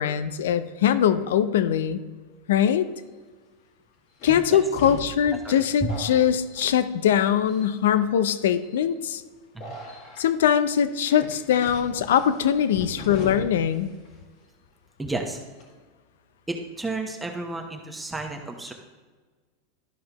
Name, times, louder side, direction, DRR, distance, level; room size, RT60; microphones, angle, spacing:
voice 1, 0.0-2.0 2.5-2.9 4.2-9.2 10.2-13.9, left 9 dB, 80° left, 13 dB, 0.5 m, -22 dB
sound 1, 2.9-3.0 4.2-7.2 7.5-8.0 8.6-8.9 9.6-10.2 11.0-13.8 14.0-14.1 15.3-15.6, left 1 dB, 55° left, 2.0 m, -40 dB
voice 2, 5.4-5.9 9.5-9.7 15.0-15.4 16.5-18.7, right 2 dB, 10° right, 1 dB, 0.9 m, -32 dB
12.5 x 5.2 x 3.0 m, 1.4 s
supercardioid pair, 120°, 0 cm